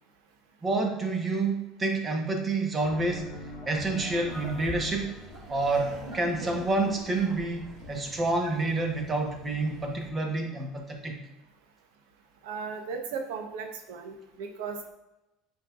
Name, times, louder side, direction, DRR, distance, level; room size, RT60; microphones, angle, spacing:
voice 1, 0.6-3.3 3.7-5.1 5.5-11.2, right 2 dB, 20° right, 3 dB, 1.1 m, -28 dB
sound 1, 2.8-7.9, left 1 dB, 25° left, 1.6 m, -42 dB
Laughter, 4.3-10.1, right 1 dB, 50° right, 2.0 m, -46 dB
voice 2, 12.4-14.9, right 5 dB, 85° right, 4 dB, 1.0 m, -36 dB
8.5 x 4.5 x 2.5 m, 0.97 s
supercardioid pair, 130°, 0 cm